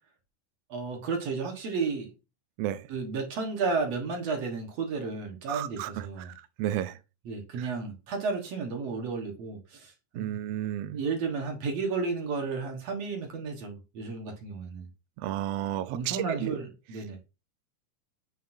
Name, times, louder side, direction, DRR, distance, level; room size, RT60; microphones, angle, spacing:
voice 1, 0.7-2.1 2.9-6.3 7.3-10.4 10.9-14.9 15.9-17.2, right 4 dB, 60° right, 2.3 m, -33 dB
voice 2, 5.5-6.3 6.6-7.0 7.6-7.7 10.1-11.0 15.2-16.5, right 12 dB, 85° right, 1.4 m, -32 dB
8.4 x 5.7 x 2.7 m
omnidirectional pair, 3.6 m